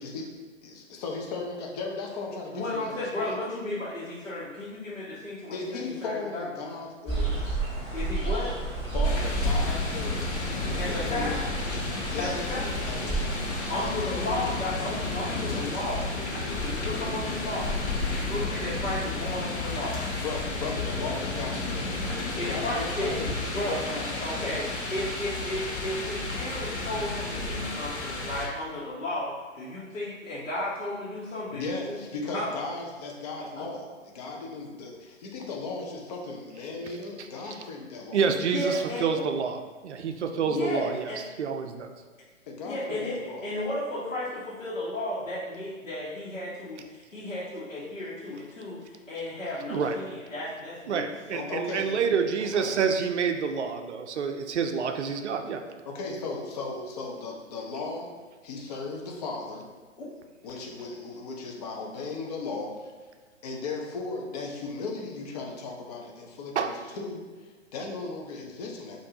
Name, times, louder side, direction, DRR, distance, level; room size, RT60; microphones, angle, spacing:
voice 1, 0.6-3.4 5.5-7.6 8.9-10.5 10.9-11.5 12.1-13.5 13.8-13.9 20.2-23.3 23.6-24.3 31.5-38.3 41.6-41.7 42.5-43.5 51.3-52.0 52.4-52.8 55.8-58.1 58.4-59.6 60.4-62.9 63.4-69.0, left 3 dB, 30° left, 0 dB, 0.6 m, -36 dB
voice 2, 2.5-6.5 7.9-8.5 10.8-11.5 12.2-12.8 13.7-16.1 16.5-17.8 18.0-20.0 22.4-23.1 23.5-23.9 24.2-32.0 32.3-32.6 33.6-33.7 38.5-39.1 40.5-41.2 42.6-43.2 43.4-51.4 60.0-60.2, left 1 dB, 85° left, -10 dB, 1.2 m, -34 dB
sound 1, 7.1-13.9, right 3 dB, 15° left, 1.3 m, -31 dB
sound 2, 9.0-28.5, left 3 dB, 60° left, 1.0 m, -32 dB
voice 3, 38.1-39.6 39.8-41.1 41.4-41.9 49.7-50.0 50.9-55.6 66.6-66.7, right 6 dB, 65° right, 6 dB, 0.5 m, -28 dB
5.1 x 2.6 x 2.8 m, 1.4 s
figure-of-eight pair, 130°, 38 cm